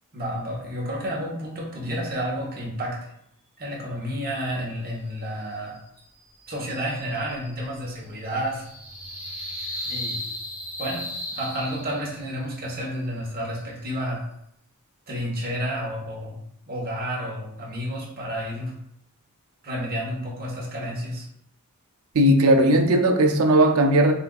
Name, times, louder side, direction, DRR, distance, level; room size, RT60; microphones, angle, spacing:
voice 1, 0.1-3.1 3.6-5.8 6.5-8.6 9.8-10.2 10.8-14.2 15.1-16.4 16.7-18.7 19.6-21.3, equal, 40° right, -3 dB, 1.1 m, -30 dB
sound 1, 6.4-12.4, left 1 dB, 10° right, 0.9 m, -36 dB
voice 2, 22.1-24.1, right 1 dB, 75° right, 4 dB, 0.5 m, -17 dB
6.8 x 2.5 x 2.4 m, 0.75 s
head